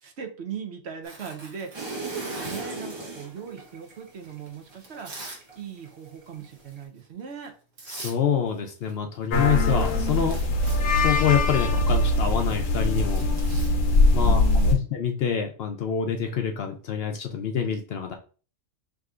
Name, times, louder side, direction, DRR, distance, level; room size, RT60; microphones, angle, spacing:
voice 1, 0.0-7.5 14.2-14.8, right 8 dB, 60° right, 4 dB, 1.0 m, -38 dB
Tearing, 1.0-2.8 3.6-5.4 5.8-6.1 6.5-6.7 7.4-7.5 7.8-8.2 8.5-9.3 9.6-14.8, right 2 dB, 80° right, 1.5 m, -44 dB
sound 1, 1.7-5.9 6.2-6.8, right 2 dB, 25° right, 0.8 m, -37 dB
voice 2, 7.9-10.4 11.0-13.2 14.1-18.1, left 8 dB, 65° left, 4 dB, 0.7 m, -26 dB
sound 2, 9.3-14.7, left 2 dB, 80° left, 1.1 m, -22 dB
5.9 x 2.8 x 2.4 m, 0.37 s
omnidirectional pair, 1.3 m